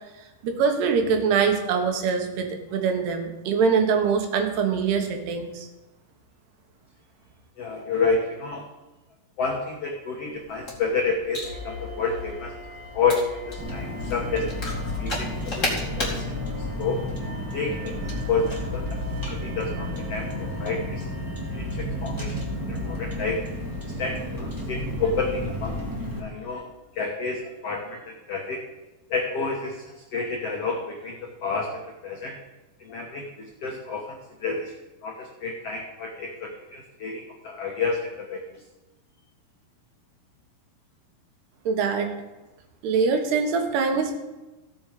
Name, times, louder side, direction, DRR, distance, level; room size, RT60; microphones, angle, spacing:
voice 1, 0.4-5.7 41.7-42.1 42.8-44.2, right 5 dB, 80° right, 4 dB, 3.4 m, -23 dB
voice 2, 7.6-8.7 9.4-12.5 12.9-14.5 15.0-16.2 16.6-17.0 17.5-17.9 18.3-19.0 19.4-21.1 21.5-22.4 22.6-23.4 24.0-25.8 26.2-28.6 29.1-32.4 32.8-34.7 35.0-38.6, left 4 dB, 75° left, 0 dB, 1.4 m, -29 dB
sound 1, 10.3-16.2, left 2 dB, 20° left, 2.4 m, -35 dB
sound 2, 11.4-26.7, left 2 dB, 45° right, 1.1 m, -38 dB
Car, 13.6-26.2, equal, 10° right, 1.5 m, -33 dB
16.0 x 7.2 x 5.0 m, 1.1 s
omnidirectional pair, 4.6 m